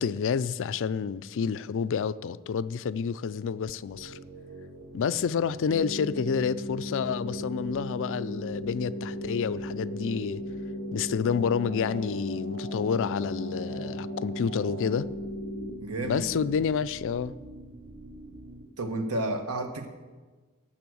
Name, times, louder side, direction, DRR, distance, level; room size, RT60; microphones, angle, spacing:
voice 1, 0.0-4.2 4.9-10.4 10.9-15.1 16.0-17.3, left 6 dB, 60° left, 0.4 m, -29 dB
sound 1, 3.9-18.7, right 2 dB, 50° right, 0.9 m, -46 dB
sound 2, 5.7-15.7, equal, 25° right, 1.2 m, -36 dB
voice 2, 15.8-16.4 18.8-19.9, right 2 dB, 80° right, 1.4 m, -31 dB
17.5 x 6.2 x 6.3 m
head